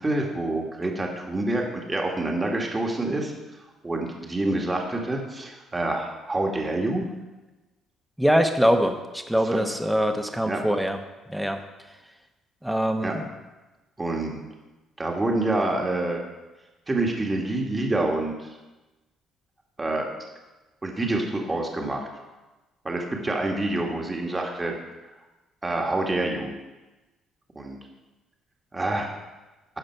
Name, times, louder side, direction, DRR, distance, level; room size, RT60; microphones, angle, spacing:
voice 1, 0.0-3.3 3.8-7.0 10.4-10.6 13.0-13.1 14.0-14.4 15.0-16.2 16.9-18.3 19.8-20.0 20.8-22.1 22.8-24.8 25.6-26.5 27.5-27.8 28.7-29.1, right 2 dB, 20° right, 1 dB, 1.6 m, -27 dB
voice 2, 8.2-11.0 11.3-11.6 12.6-13.3, equal, 5° right, 6 dB, 1.0 m, -23 dB
12.5 x 4.9 x 4.5 m, 1.1 s
supercardioid pair, 75°, 0 cm